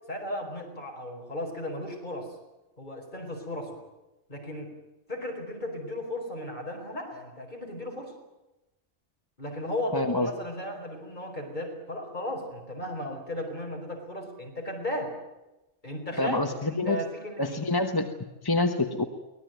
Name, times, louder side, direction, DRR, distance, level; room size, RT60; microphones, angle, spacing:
voice 1, 0.1-2.3 2.8-3.8 4.3-4.7 5.1-8.1 9.4-15.1 15.8-17.6, left 1 dB, 40° left, 1 dB, 5.0 m, -35 dB
voice 2, 9.9-10.3 16.2-17.0 17.4-18.1 18.4-19.0, left 2 dB, 20° left, 6 dB, 1.1 m, -26 dB
24.0 x 18.5 x 9.3 m, 1.0 s
omnidirectional pair, 1.2 m